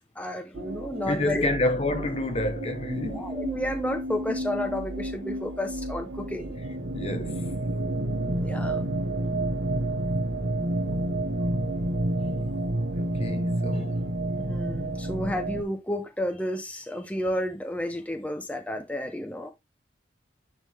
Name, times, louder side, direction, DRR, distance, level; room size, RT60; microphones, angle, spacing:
voice 1, 0.1-1.5 3.1-6.6 8.3-8.9 14.4-19.5, left 1 dB, 10° left, 0.9 m, -31 dB
sound 1, 0.5-15.6, right 1 dB, 80° right, 1.2 m, -30 dB
voice 2, 1.0-3.3 6.9-7.5 12.9-14.0, left 1 dB, 35° left, 0.9 m, -29 dB
9.7 x 3.8 x 3.5 m
head